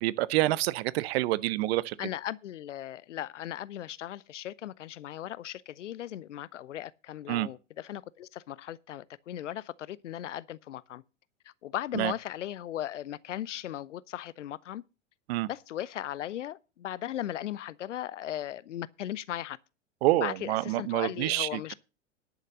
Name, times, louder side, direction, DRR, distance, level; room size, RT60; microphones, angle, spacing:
voice 1, 0.0-2.0 7.3-7.5 11.9-12.1 15.3-15.5 20.0-21.7, right 17 dB, 55° right, 0.8 m, -27 dB
voice 2, 2.0-11.0 11.6-14.8 15.5-19.6 20.2-21.7, left 12 dB, 75° left, 0.7 m, -37 dB
11.0 x 6.5 x 6.6 m
figure-of-eight pair, 95°, 37 cm